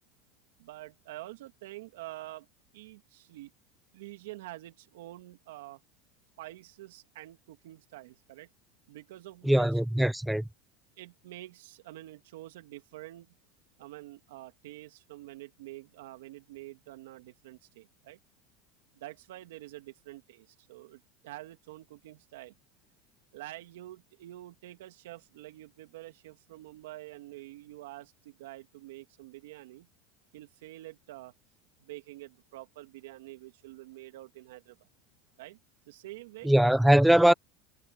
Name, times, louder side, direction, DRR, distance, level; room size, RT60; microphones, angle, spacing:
voice 1, 0.6-2.5 2.7-3.5 3.9-5.8 6.4-8.5 8.9-9.7 11.0-13.3 13.8-18.2 18.9-22.5 23.3-29.9 30.3-31.3 31.8-34.9 35.4-35.6 35.9-36.5, right 16 dB, 80° right, 2.4 m, -47 dB
voice 2, 9.4-10.4 36.4-37.3, right 1 dB, 5° right, 0.9 m, -21 dB
supercardioid pair, 110°, 0 cm